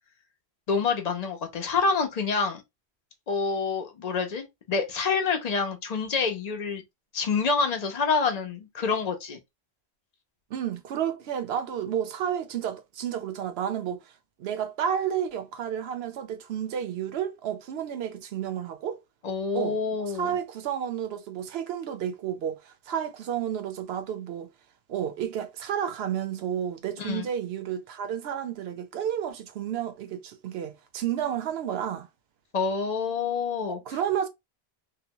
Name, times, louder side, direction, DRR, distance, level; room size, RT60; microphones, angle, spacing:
voice 1, 0.7-2.6 3.3-6.8 7.1-9.4 19.2-20.4 27.0-27.3 32.5-33.8, left 5 dB, 45° left, 0.6 m, -27 dB
voice 2, 10.5-14.0 14.4-19.0 19.5-19.8 20.1-24.5 24.9-32.1 33.7-34.3, right 9 dB, 75° right, 0.8 m, -31 dB
2.8 x 2.1 x 2.6 m
omnidirectional pair, 1.1 m